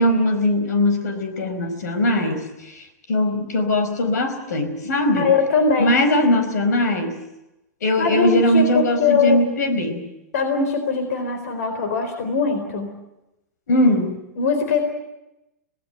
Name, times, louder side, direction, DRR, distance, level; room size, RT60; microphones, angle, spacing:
voice 1, 0.0-5.3 5.8-7.2 7.8-10.0 13.7-14.2, left 1 dB, 80° left, 8 dB, 4.8 m, -20 dB
voice 2, 5.2-5.9 8.0-9.4 10.3-12.9 14.4-14.8, left 4 dB, 65° left, 7 dB, 4.0 m, -21 dB
26.0 x 18.5 x 8.0 m, 0.92 s
hypercardioid pair, 150°, 9 cm